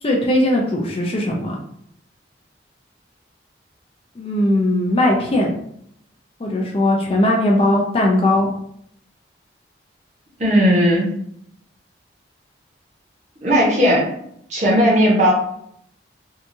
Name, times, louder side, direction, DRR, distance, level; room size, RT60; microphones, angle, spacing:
voice 1, 0.0-1.6 4.2-5.6 6.4-8.5, left 1 dB, 30° left, -1 dB, 0.4 m, -18 dB
voice 2, 10.4-11.1 13.4-14.1 14.5-15.3, equal, 40° right, -3 dB, 0.8 m, -16 dB
2.8 x 2.3 x 2.6 m, 0.70 s
head